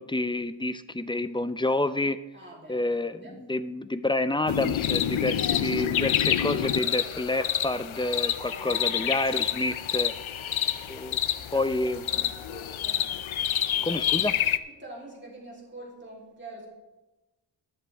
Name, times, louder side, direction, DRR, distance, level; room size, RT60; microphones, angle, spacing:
voice 1, 0.0-2.2 2.7-5.3 5.6-10.1 10.9-11.2 11.5-12.0 13.8-14.3, left 2 dB, 10° left, 12 dB, 0.4 m, -28 dB
voice 2, 2.3-3.4 5.3-6.0 8.4-9.1 11.4-13.2 13.7-14.1 14.7-16.7, equal, 25° right, -3 dB, 3.5 m, -45 dB
sound 1, 4.5-14.6, left 10 dB, 85° left, 0.7 m, -28 dB
21.5 x 7.3 x 3.5 m, 1.1 s
wide cardioid pair, 90°, 47 cm